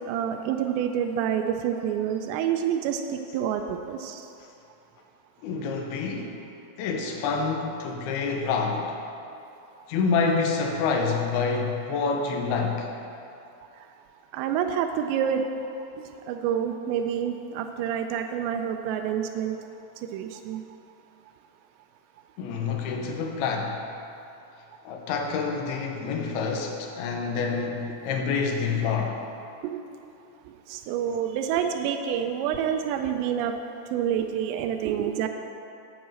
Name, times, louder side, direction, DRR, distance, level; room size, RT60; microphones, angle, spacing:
voice 1, 0.1-4.3 11.9-12.0 14.3-15.5 16.0-19.6 20.1-20.6 29.6-29.8 30.7-33.5 33.9-35.3, right 9 dB, 90° right, 5 dB, 2.8 m, -28 dB
voice 2, 5.4-6.3 6.8-9.0 9.9-12.9 22.4-23.8 24.8-29.2, left 5 dB, 75° left, 2 dB, 2.5 m, -27 dB
10.0 x 4.8 x 7.5 m, 2.7 s
omnidirectional pair, 4.9 m